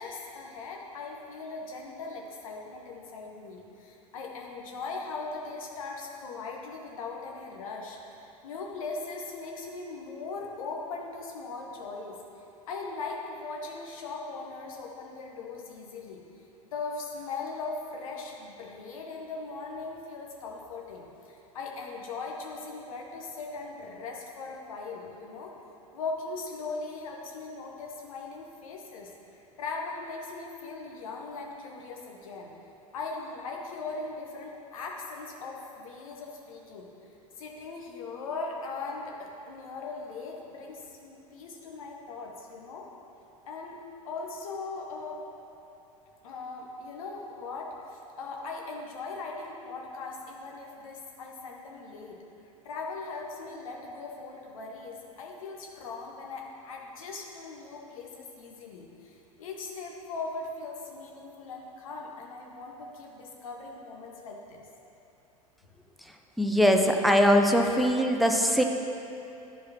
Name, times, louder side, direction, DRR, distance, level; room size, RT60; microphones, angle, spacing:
voice 1, 0.0-8.0 8.4-12.2 12.7-16.2 16.7-25.5 25.9-32.5 32.9-36.9 37.4-42.9 43.5-43.8 44.0-45.2 46.2-52.2 52.6-64.6, left 3 dB, 65° left, -1 dB, 1.0 m, -39 dB
voice 2, 66.4-68.6, equal, ahead, 3 dB, 0.4 m, -21 dB
10.5 x 4.7 x 2.9 m, 3.0 s
figure-of-eight pair, 80°, 19 cm